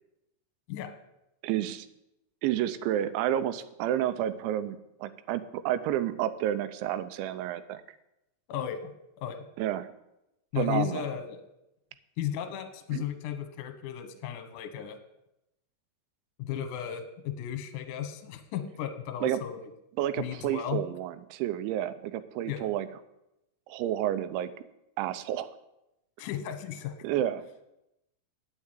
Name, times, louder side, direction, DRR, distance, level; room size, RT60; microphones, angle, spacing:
voice 1, 1.4-1.9 2.4-7.8 9.6-9.9 10.6-11.0 12.9-13.1 19.2-19.4 20.0-22.9 23.7-24.5 25.0-25.5 27.0-27.5, right 11 dB, 85° right, 12 dB, 3.1 m, -30 dB
voice 2, 8.5-8.9 9.2-9.5 10.5-11.4 12.2-15.0 16.4-19.7 20.2-20.8 22.5-22.6 26.2-27.2, left 10 dB, 70° left, 8 dB, 2.0 m, -35 dB
9.9 x 6.9 x 9.0 m, 0.87 s
omnidirectional pair, 5.2 m